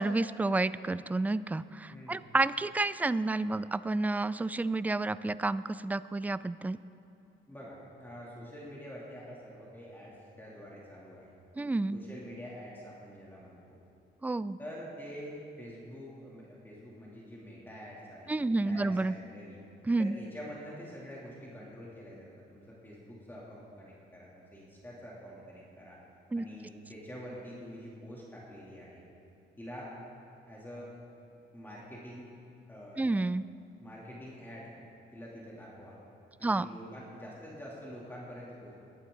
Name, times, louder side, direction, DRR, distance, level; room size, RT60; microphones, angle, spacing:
voice 1, 0.0-6.8 11.6-12.0 14.2-14.6 18.3-19.1 19.9-20.1 26.3-26.4 33.0-33.5 36.4-36.7, right 2 dB, 10° right, 16 dB, 0.3 m, -30 dB
voice 2, 1.9-2.4 7.5-11.4 11.9-13.8 14.6-19.6 20.0-26.0 26.4-29.0 29.6-29.9 30.4-30.9 31.5-32.3 32.7-33.1 33.8-34.7 35.1-36.0 36.4-38.8, equal, 10° left, -6 dB, 3.1 m, -46 dB
21.0 x 11.5 x 4.0 m, 2.6 s
cardioid pair, 90°, 20 cm